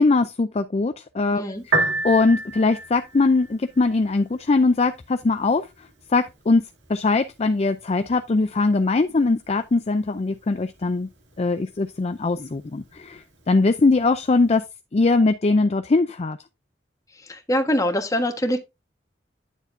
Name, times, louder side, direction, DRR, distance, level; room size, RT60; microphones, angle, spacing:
voice 1, 0.0-6.6 6.9-11.1 11.4-14.6 14.9-16.4, left 3 dB, 35° left, 0.4 m, -21 dB
voice 2, 1.3-1.6 17.5-18.6, left 1 dB, 20° left, 1.4 m, -23 dB
Piano, 1.6-14.6, right 2 dB, 85° right, 2.0 m, -35 dB
10.0 x 6.8 x 2.6 m
head